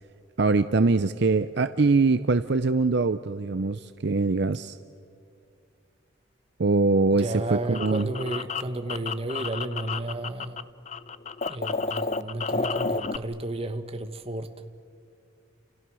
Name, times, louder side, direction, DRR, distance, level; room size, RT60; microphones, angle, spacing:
voice 1, 0.4-4.8 6.6-8.1, right 3 dB, 55° right, 0.6 m, -23 dB
voice 2, 7.1-10.7 11.5-14.6, right 1 dB, 30° right, 1.3 m, -33 dB
sound 1, 7.2-10.6 10.9-13.2, left 4 dB, 35° left, 0.5 m, -31 dB
30.0 x 28.5 x 6.3 m
head